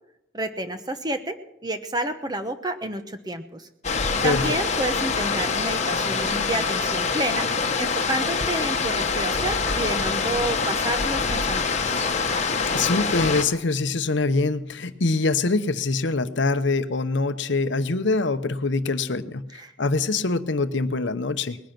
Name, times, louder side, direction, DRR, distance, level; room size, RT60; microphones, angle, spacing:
voice 1, 0.3-3.7 4.2-11.7 19.6-19.7, right 1 dB, 20° right, 8 dB, 1.0 m, -30 dB
sound 1, 3.8-13.4, left 4 dB, 35° left, 1.3 m, -25 dB
voice 2, 4.2-4.6 12.7-21.6, left 3 dB, 65° left, 11 dB, 0.8 m, -24 dB
20.0 x 10.5 x 5.9 m, 0.83 s
head